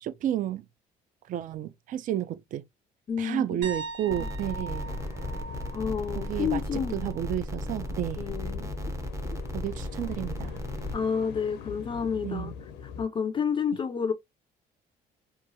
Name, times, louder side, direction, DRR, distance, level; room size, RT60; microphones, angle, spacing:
voice 1, 0.0-0.7 1.3-2.6 3.2-4.9 6.2-8.3 9.5-10.6 12.2-12.5, right 11 dB, 50° right, 0.4 m, -31 dB
voice 2, 3.1-3.7 4.1-4.3 5.7-7.1 8.2-8.7 10.9-12.5 12.8-14.1, left 6 dB, 30° left, 0.4 m, -30 dB
sound 1, 3.6-7.4 7.7-8.0 10.9-11.0, right 4 dB, 85° right, 1.7 m, -42 dB
sound 2, 4.1-10.9, left 1 dB, 15° right, 0.6 m, -35 dB
sound 3, 4.8-13.0, left 6 dB, 85° left, 0.6 m, -42 dB
2.9 x 2.3 x 2.6 m
cardioid pair, 110°, 17 cm